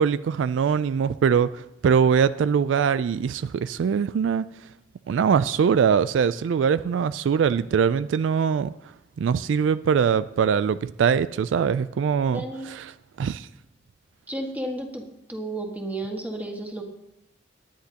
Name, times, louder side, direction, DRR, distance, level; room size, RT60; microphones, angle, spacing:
voice 1, 0.0-4.5 5.1-8.7 9.2-12.9 13.2-13.5, right 7 dB, 70° right, 15 dB, 0.3 m, -22 dB
voice 2, 12.3-12.7 14.3-15.0 15.3-16.8, right 1 dB, 10° right, 1 dB, 1.7 m, -32 dB
18.5 x 10.0 x 2.9 m, 0.81 s
head